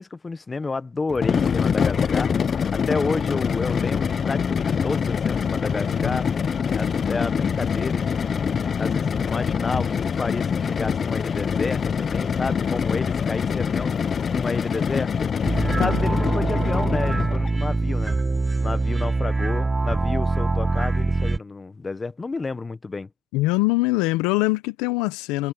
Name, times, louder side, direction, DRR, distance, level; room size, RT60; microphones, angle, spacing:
voice 1, 0.0-2.3 2.7-6.3 6.7-14.0 14.3-15.3 15.6-23.1, left 3 dB, 25° left, 1.4 m, -31 dB
sound 1, 1.1-17.5, left 6 dB, 45° left, 1.2 m, -24 dB
sound 2, 15.4-21.4, right 3 dB, 20° right, 0.4 m, -23 dB
voice 2, 23.3-25.5, left 21 dB, 80° left, 1.1 m, -23 dB
supercardioid pair, 70°, 0 cm